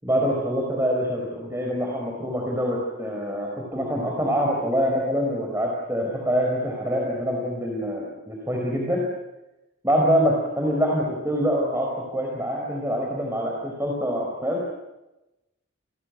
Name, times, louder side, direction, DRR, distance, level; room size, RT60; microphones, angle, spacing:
voice 1, 0.0-9.0 9.8-14.7, equal, 15° right, -1 dB, 4.7 m, -25 dB
28.5 x 20.0 x 9.5 m, 0.99 s
head